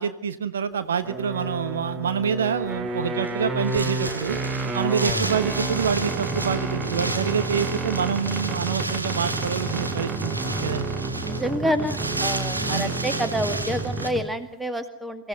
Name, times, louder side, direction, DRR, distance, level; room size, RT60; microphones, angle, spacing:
voice 1, 0.0-4.4 4.7-10.8 12.7-12.9, right 7 dB, 65° right, 11 dB, 1.2 m, -27 dB
sound 1, 1.0-14.4, right 2 dB, 20° right, 1.8 m, -30 dB
Wind, 2.9-14.1, right 2 dB, 85° right, 2.0 m, -33 dB
voice 2, 10.5-10.9 11.2-15.3, equal, 5° right, 10 dB, 2.3 m, -28 dB
24.5 x 16.0 x 9.6 m, 0.75 s
figure-of-eight pair, 90°, 0 cm